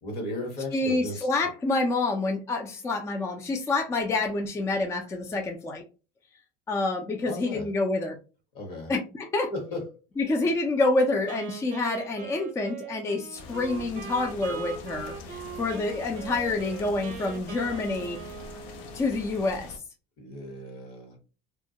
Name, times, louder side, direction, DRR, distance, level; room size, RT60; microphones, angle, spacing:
voice 1, 0.0-1.5 7.2-7.7 8.5-8.9 9.5-9.9 10.4-10.5 20.2-21.2, left 1 dB, 60° left, 2 dB, 1.1 m, -36 dB
voice 2, 0.7-5.8 6.7-8.2 8.9-9.5 10.2-18.2 18.9-19.7, left 2 dB, 15° left, 3 dB, 0.3 m, -27 dB
Wind instrument woodwind instrument, 11.3-19.2, right 6 dB, 45° right, 0.6 m, -41 dB
sound 1, 13.4-19.8, left 4 dB, 80° left, 0.5 m, -44 dB
2.2 x 2.1 x 2.6 m, 0.33 s
supercardioid pair, 120°, 19 cm